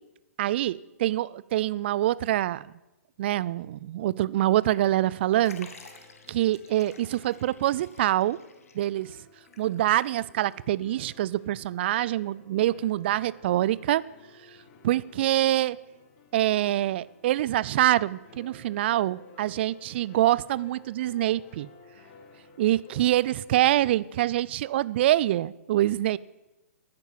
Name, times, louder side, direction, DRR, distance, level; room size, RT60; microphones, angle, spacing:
voice 1, 0.4-2.7 3.2-5.7 6.3-8.4 8.7-9.1 9.6-14.0 14.8-15.8 16.3-21.7 22.6-26.2, right 14 dB, 45° right, 21 dB, 0.4 m, -25 dB
sound 1, 4.8-23.9, left 2 dB, 40° left, 2.0 m, -55 dB
Liquid, 5.4-10.5 10.8-10.9 11.9-12.0, left 5 dB, 70° left, 1.7 m, -51 dB
13.5 x 9.1 x 7.4 m, 0.98 s
figure-of-eight pair, 120°, 8 cm